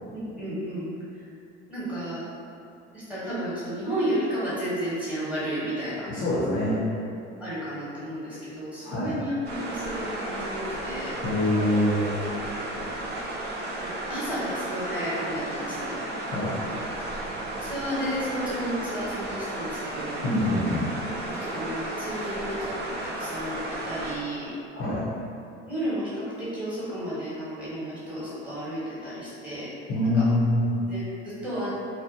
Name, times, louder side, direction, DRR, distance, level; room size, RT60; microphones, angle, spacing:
voice 1, 0.1-0.9 1.7-2.2 2.9-6.1 6.7-6.8 7.4-11.2 13.7-16.0 16.6-16.8 17.6-20.2 21.3-22.7 23.0-24.5 25.6-29.7 30.0-30.2 30.8-31.7, equal, 5° right, -11 dB, 1.1 m, -32 dB
voice 2, 6.1-6.8 8.8-9.2 11.2-12.1 16.3-16.5 20.2-20.9 24.7-25.0 29.9-30.6, left 1 dB, 35° left, -9 dB, 0.7 m, -24 dB
sound 1, 9.4-24.2, right 1 dB, 30° right, 0.5 m, -33 dB
2.6 x 2.2 x 2.5 m, 2.6 s
hypercardioid pair, 75°, 36 cm